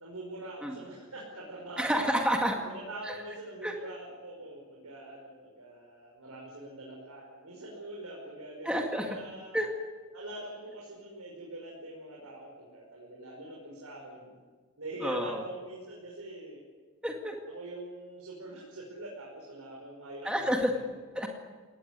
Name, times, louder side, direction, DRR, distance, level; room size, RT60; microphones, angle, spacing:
voice 1, 0.0-2.0 2.6-9.6 10.1-14.4 14.8-16.6 17.5-20.8, right 1 dB, 85° right, -3 dB, 5.6 m, -44 dB
voice 2, 1.8-2.6 3.1-3.2 3.6-3.7 8.6-9.1 9.5-9.7 15.0-15.4 17.0-17.4 20.3-20.7 21.2-21.3, equal, 5° right, 2 dB, 2.1 m, -29 dB
22.5 x 18.5 x 9.7 m, 1.5 s
head